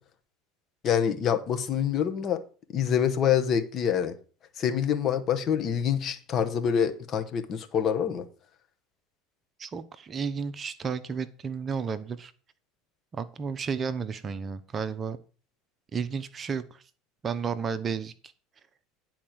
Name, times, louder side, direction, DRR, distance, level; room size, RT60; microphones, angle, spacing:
voice 1, 0.8-2.4 2.7-4.1 4.6-8.2, left 8 dB, 40° left, 1.4 m, -26 dB
voice 2, 9.6-12.3 13.1-15.2 15.9-16.8 17.2-18.1, right 6 dB, 30° right, 0.8 m, -32 dB
10.0 x 4.4 x 6.1 m
figure-of-eight pair, 70°, 0 cm